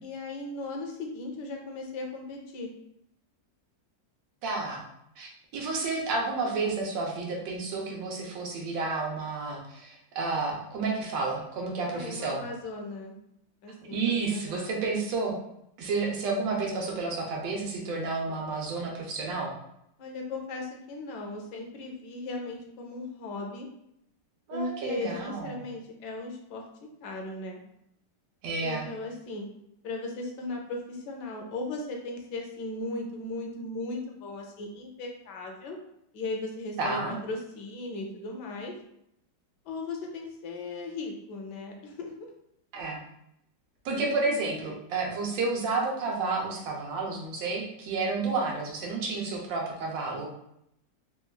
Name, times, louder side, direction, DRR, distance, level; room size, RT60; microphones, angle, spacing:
voice 1, 0.0-2.7 11.9-13.1 13.6-14.8 20.0-23.7 24.5-26.6 27.0-27.6 28.6-29.5 29.8-35.8 36.1-38.7 39.7-42.3 44.0-44.6, left 2 dB, 75° left, 1 dB, 1.2 m, -37 dB
voice 2, 4.4-4.8 5.2-12.4 13.9-15.4 15.8-19.5 24.5-25.6 28.4-28.9 36.8-37.2 42.7-43.0 43.8-50.3, right 3 dB, 85° right, -1 dB, 1.4 m, -31 dB
3.7 x 2.2 x 2.2 m, 0.78 s
omnidirectional pair, 1.9 m